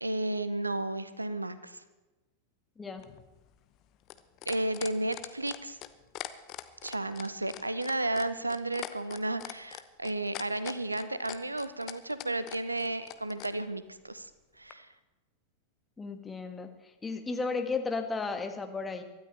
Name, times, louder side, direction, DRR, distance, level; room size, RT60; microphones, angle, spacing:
voice 1, 0.0-1.8 4.5-5.8 6.8-14.3 14.6-14.9, right 2 dB, 85° right, 14 dB, 0.7 m, -33 dB
sound 1, 3.0-13.5 14.7-14.8, left 16 dB, 40° left, 0.8 m, -42 dB
voice 2, 16.0-16.7 17.0-19.0, left 4 dB, 15° left, 5 dB, 1.6 m, -34 dB
24.5 x 13.0 x 3.4 m, 1.1 s
figure-of-eight pair, 90°, 0 cm